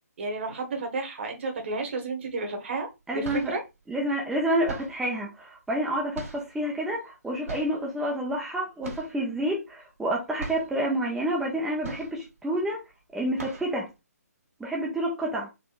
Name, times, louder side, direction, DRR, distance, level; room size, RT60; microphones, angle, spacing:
voice 1, 0.2-2.9 3.1-3.6, right 3 dB, 45° right, 1.3 m, -32 dB
sound 1, 2.2-2.4 3.0-3.7 4.6-5.1 6.1-6.6 7.4-7.8 8.8-9.2 9.5-9.6 10.0-10.1 10.4-10.8 11.8-12.4 12.8-12.9 13.3-13.8, right 3 dB, 60° right, 1.9 m, -39 dB
voice 2, 3.1-3.6 3.9-12.8 13.1-13.9 14.6-15.5, right 1 dB, 5° right, 0.5 m, -29 dB
4.2 x 3.6 x 2.4 m
figure-of-eight pair, 140°, 9 cm